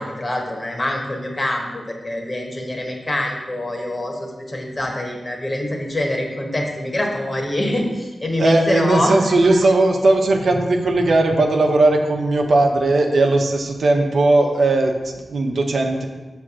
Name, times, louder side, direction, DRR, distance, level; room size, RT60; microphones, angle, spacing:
voice 1, 0.0-9.3, left 1 dB, 35° left, 0 dB, 1.3 m, -25 dB
voice 2, 8.4-16.1, right 2 dB, 75° right, 2 dB, 0.8 m, -17 dB
6.3 x 3.4 x 6.1 m, 1.2 s
cardioid pair, 70°, 0 cm